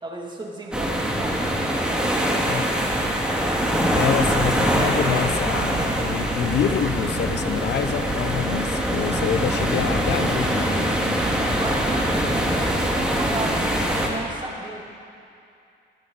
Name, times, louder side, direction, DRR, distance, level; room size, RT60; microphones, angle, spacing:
voice 1, 0.0-1.6 1.9-3.3 11.2-14.8, right 1 dB, 25° right, -2 dB, 2.2 m, -34 dB
sound 1, 0.7-14.1, equal, 5° right, 1.7 m, -23 dB
voice 2, 3.9-10.9, left 9 dB, 60° left, 11 dB, 0.5 m, -27 dB
14.5 x 12.0 x 3.9 m, 2.5 s
cardioid pair, 90°, 20 cm